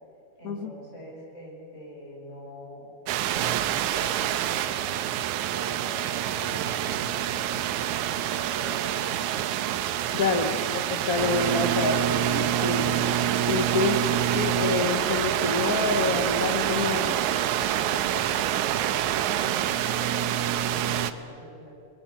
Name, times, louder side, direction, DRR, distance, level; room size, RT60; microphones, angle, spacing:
voice 1, 0.4-2.9 3.3-5.0 5.5-9.3 17.7-21.7, left 1 dB, 20° left, -4 dB, 7.0 m, -44 dB
sound 1, 3.1-21.1, right 11 dB, 90° right, 2.2 m, -26 dB
voice 2, 10.1-13.0 13.5-14.0 14.3-17.2, left 4 dB, 75° left, 6 dB, 0.8 m, -27 dB
25.0 x 21.0 x 7.0 m, 2.5 s
omnidirectional pair, 3.3 m